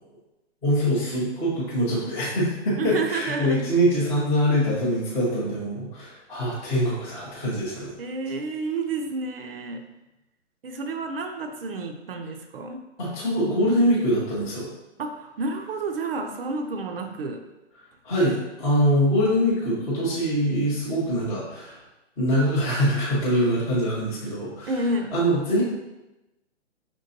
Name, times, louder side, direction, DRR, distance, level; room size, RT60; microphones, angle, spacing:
voice 1, 0.6-7.9 13.0-14.7 18.0-21.8 22.2-24.7 25.1-25.6, equal, 10° left, -9 dB, 0.5 m, -23 dB
voice 2, 2.8-3.6 8.0-9.9 10.6-12.8 15.0-17.4 24.7-25.1, right 3 dB, 50° right, 4 dB, 0.5 m, -30 dB
5.2 x 3.3 x 2.7 m, 0.99 s
hypercardioid pair, 145°, 36 cm